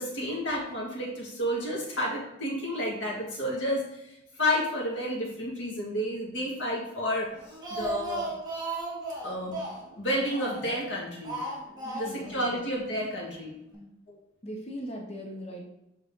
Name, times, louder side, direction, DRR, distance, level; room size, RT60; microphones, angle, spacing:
voice 1, 0.0-7.3 7.7-8.3 9.2-9.6 10.0-11.4 12.0-13.5 14.1-14.2, equal, 75° left, -2 dB, 1.9 m, -31 dB
Speech, 7.3-10.8 11.2-12.4 12.6-12.7 13.0-13.1, right 2 dB, 20° right, 1.6 m, -36 dB
voice 2, 11.8-12.6 13.7-13.9 14.4-15.7, equal, 35° left, -1 dB, 0.8 m, -40 dB
7.5 x 3.2 x 3.8 m, 0.89 s
head